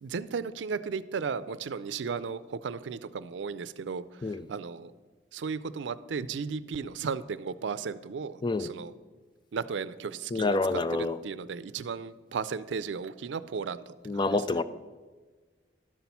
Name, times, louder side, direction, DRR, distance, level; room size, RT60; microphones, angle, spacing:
voice 1, 0.0-4.0 4.5-4.9 5.3-8.9 9.5-10.6 10.9-13.8 14.1-14.3, right 5 dB, 90° right, 0.4 m, -35 dB
voice 2, 10.3-11.2 14.0-14.6, left 3 dB, 25° left, 0.3 m, -27 dB
12.0 x 6.0 x 5.6 m
head